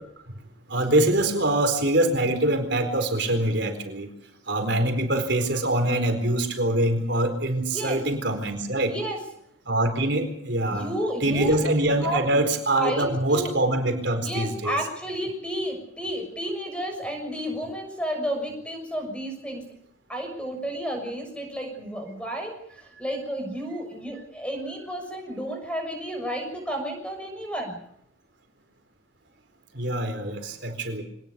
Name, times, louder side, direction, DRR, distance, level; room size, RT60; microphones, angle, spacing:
voice 1, 0.7-4.1 4.5-8.9 9.7-10.9 11.2-14.8 29.7-31.0, right 1 dB, 60° right, 5 dB, 4.4 m, -24 dB
voice 2, 8.9-9.2 10.7-11.6 12.0-12.4 12.8-13.0 13.3-13.5 14.2-19.7 20.1-27.8, equal, 5° left, 4 dB, 6.6 m, -31 dB
24.5 x 19.5 x 6.9 m, 0.73 s
head